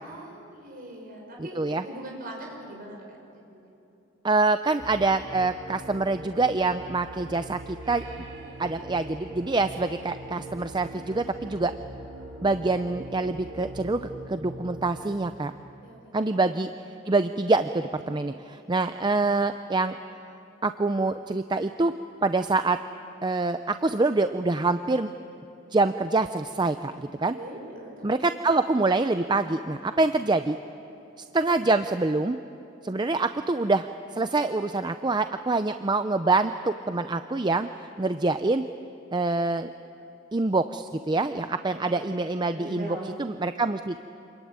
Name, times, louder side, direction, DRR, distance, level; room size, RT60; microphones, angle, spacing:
voice 1, 0.0-3.0 3.3-3.7 8.2-8.7 15.8-16.1 27.3-28.2 41.7-42.0 42.5-43.1, right 1 dB, 45° right, -1 dB, 6.3 m, -42 dB
voice 2, 4.2-8.0 8.6-11.7 12.4-15.5 16.1-16.7 17.1-20.0 20.6-21.9 22.2-22.8 23.2-25.1 25.7-27.4 28.0-30.6 31.3-32.4 32.8-33.9 34.1-37.7 38.0-38.6 39.1-39.7 40.3-44.0, right 3 dB, 20° right, 9 dB, 0.5 m, -25 dB
sound 1, 4.8-15.0, right 1 dB, 80° right, 5.0 m, -42 dB
27.5 x 22.0 x 9.5 m, 3.0 s
head